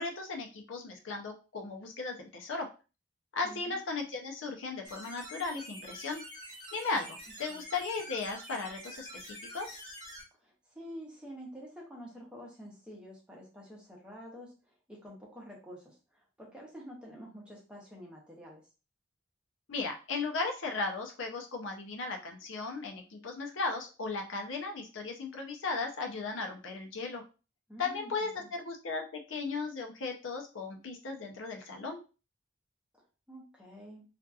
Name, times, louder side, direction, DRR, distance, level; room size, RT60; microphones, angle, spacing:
voice 1, 0.0-2.7 3.3-6.2 6.7-9.8 19.7-27.2 27.8-32.0, left 3 dB, 85° left, 3 dB, 0.6 m, -36 dB
voice 2, 3.4-3.8 7.5-7.6 10.4-18.7 27.7-28.5 33.3-34.0, equal, 5° right, -2 dB, 0.7 m, -48 dB
sound 1, 4.8-10.2, equal, 25° right, 1.0 m, -47 dB
2.7 x 2.4 x 2.3 m, 0.33 s
head